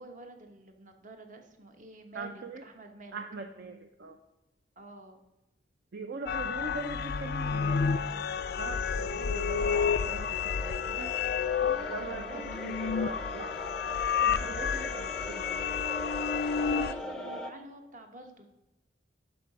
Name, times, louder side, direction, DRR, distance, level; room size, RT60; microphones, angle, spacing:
voice 1, 0.0-3.2 4.8-5.2 11.2-12.7 16.3-18.5, right 2 dB, 45° right, 5 dB, 1.1 m, -48 dB
voice 2, 2.1-2.6 3.1-4.2 5.9-11.1 11.8-13.6 14.2-15.5, right 3 dB, 65° right, 6 dB, 0.5 m, -41 dB
sound 1, 6.3-16.9, left 6 dB, 60° left, 0.3 m, -30 dB
sound 2, 7.1-17.5, equal, 5° left, 0.6 m, -42 dB
12.0 x 4.9 x 4.9 m, 0.96 s
head